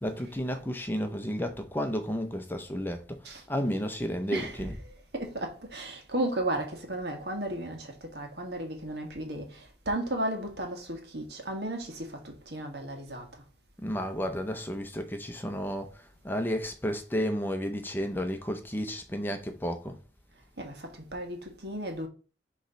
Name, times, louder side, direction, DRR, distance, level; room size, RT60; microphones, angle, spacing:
voice 1, 0.0-3.2 3.5-4.8 13.8-20.0, equal, 10° left, 0.6 m, -32 dB
voice 2, 4.3-13.3 20.6-22.1, right 1 dB, 70° right, 1.5 m, -35 dB
6.4 x 3.2 x 5.3 m
head